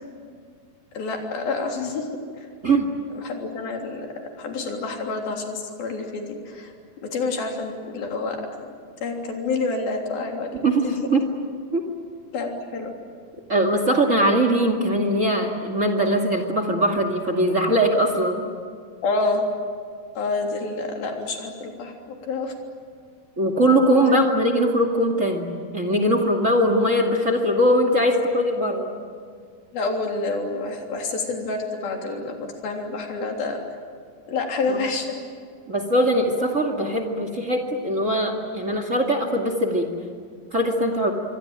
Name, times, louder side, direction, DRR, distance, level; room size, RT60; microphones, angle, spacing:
voice 1, 0.9-2.1 2.4-2.5 3.1-4.1 4.3-6.7 7.0-8.4 9.0-10.5 10.8-11.2 12.3-12.9 19.0-19.4 20.1-21.9 22.2-22.5 24.1-24.2 29.7-33.6 34.3-35.2, left 3 dB, 65° left, 2 dB, 5.2 m, -28 dB
voice 2, 10.6-11.2 11.7-11.8 13.5-18.4 23.4-25.5 25.7-28.9 34.7-34.8 35.7-39.9 40.5-41.1, right 1 dB, 25° right, 5 dB, 1.9 m, -21 dB
26.5 x 24.0 x 9.0 m, 2.1 s
omnidirectional pair, 4.6 m